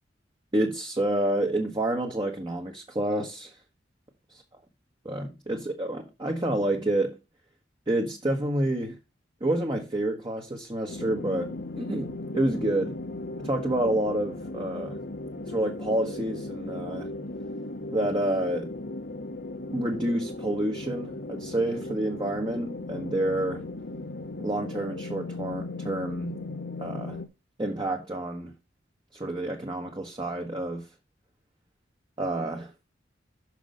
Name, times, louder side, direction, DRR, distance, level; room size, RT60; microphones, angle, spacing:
voice 1, 0.5-3.5 5.0-7.2 7.9-8.9 9.4-13.0 13.4-15.0 15.5-17.1 17.9-18.7 19.7-23.6 24.4-26.4 26.8-27.2 27.6-28.5 29.1-30.8 32.2-32.7, right 1 dB, 25° right, 1.3 m, -28 dB
sound 1, 10.9-27.3, left 2 dB, 55° left, 1.0 m, -37 dB
6.1 x 6.1 x 5.2 m
head